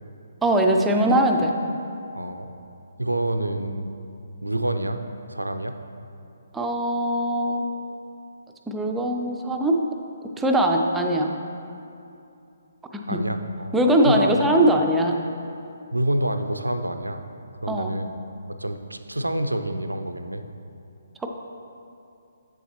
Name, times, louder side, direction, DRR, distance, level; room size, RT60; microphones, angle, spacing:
voice 1, 0.4-1.5 6.5-7.7 8.7-9.8 10.4-11.3 12.9-13.2 13.7-15.1 17.7-17.9, right 1 dB, 5° right, 2 dB, 0.4 m, -21 dB
voice 2, 2.1-2.5 3.0-3.9 4.4-5.0 5.3-5.7 13.1-13.8 14.0-14.4 15.9-17.2 17.6-18.1 18.5-20.4, right 1 dB, 85° right, 8 dB, 0.4 m, -27 dB
7.8 x 7.0 x 3.0 m, 2.7 s
figure-of-eight pair, 135°, 0 cm